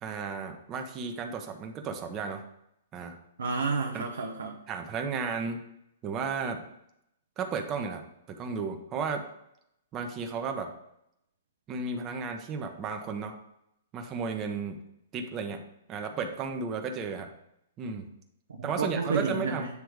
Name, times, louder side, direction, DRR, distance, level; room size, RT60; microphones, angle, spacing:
voice 1, 0.0-2.4 2.9-3.2 3.9-4.1 4.7-5.6 6.0-6.6 7.4-8.0 8.3-9.2 9.9-10.7 11.7-13.3 13.9-14.8 15.1-15.6 15.9-17.3 17.8-18.1 18.6-19.7, right 5 dB, 30° right, 4 dB, 0.8 m, -33 dB
voice 2, 3.4-4.6 18.6-19.7, right 4 dB, 80° right, 1 dB, 0.8 m, -30 dB
8.1 x 3.4 x 4.7 m, 0.77 s
hypercardioid pair, 125°, 0 cm